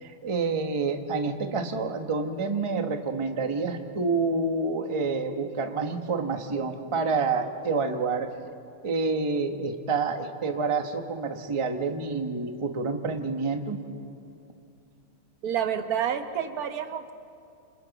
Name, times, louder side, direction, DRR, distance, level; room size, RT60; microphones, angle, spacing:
voice 1, 0.0-8.3 8.8-13.8, right 4 dB, 25° right, 5 dB, 0.7 m, -28 dB
voice 2, 15.4-17.1, right 8 dB, 50° right, 8 dB, 1.3 m, -29 dB
28.5 x 26.0 x 4.1 m, 2.5 s
omnidirectional pair, 2.4 m